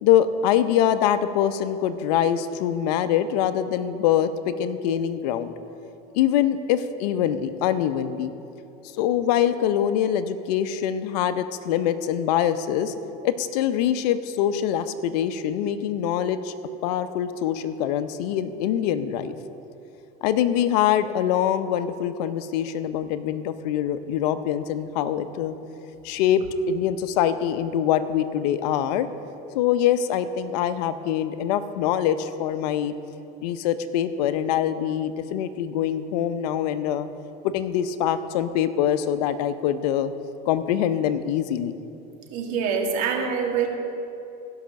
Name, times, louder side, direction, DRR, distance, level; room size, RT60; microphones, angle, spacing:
voice 1, 0.0-5.5 6.1-8.3 8.9-12.9 13.2-16.5 16.8-19.3 20.2-25.6 26.0-29.1 29.5-32.9 33.4-37.1 37.4-40.1 40.5-41.7, left 10 dB, 75° left, 12 dB, 0.7 m, -24 dB
voice 2, 42.3-43.7, right 6 dB, 75° right, 1 dB, 1.9 m, -25 dB
16.0 x 5.7 x 6.3 m, 2.8 s
supercardioid pair, 105°, 20 cm